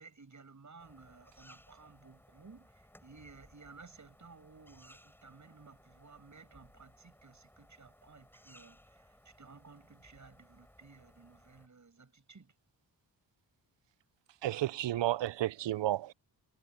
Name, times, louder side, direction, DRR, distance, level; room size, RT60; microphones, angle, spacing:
voice 1, 0.0-12.5, right 4 dB, 40° right, 7.9 m, -56 dB
sound 1, 0.8-11.7, equal, 5° left, 6.9 m, -62 dB
voice 2, 14.4-16.1, right 14 dB, 80° right, 0.5 m, -32 dB
wide cardioid pair, 150°, 43 cm